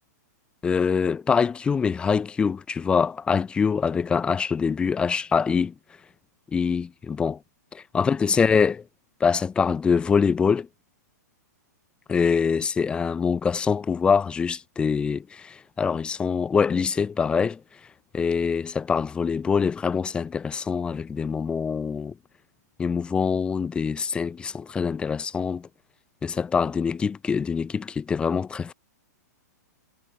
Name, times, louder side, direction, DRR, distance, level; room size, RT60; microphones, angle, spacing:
voice 1, 0.6-5.7 6.5-7.4 7.7-8.8 9.2-10.7 12.1-17.6 18.1-22.1 22.8-25.7 26.2-28.7, left 6 dB, 10° left, 0.9 m, -24 dB
hypercardioid pair, 155°, 10 cm